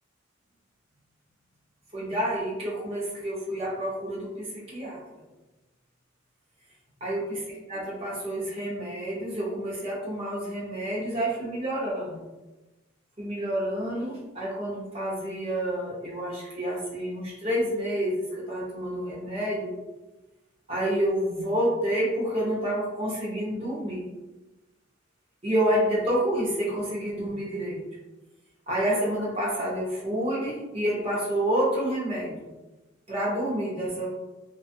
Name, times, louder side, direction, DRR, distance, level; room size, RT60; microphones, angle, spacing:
voice 1, 1.9-5.0 7.0-7.4 7.7-12.2 13.2-19.7 20.7-24.1 25.4-27.8 28.7-32.5 33.1-34.1, right 1 dB, 30° right, -7 dB, 0.7 m, -29 dB
2.6 x 2.3 x 2.5 m, 1.1 s
head